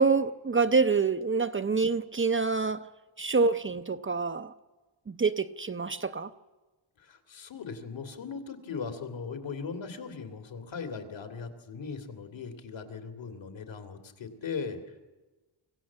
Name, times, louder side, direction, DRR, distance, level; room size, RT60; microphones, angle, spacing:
voice 1, 0.0-2.8 3.2-4.5 5.1-6.3, right 4 dB, 25° right, 0.6 m, -26 dB
voice 2, 7.0-15.0, left 5 dB, 70° left, 2.7 m, -39 dB
25.0 x 16.0 x 7.4 m
wide cardioid pair, 110°, 46 cm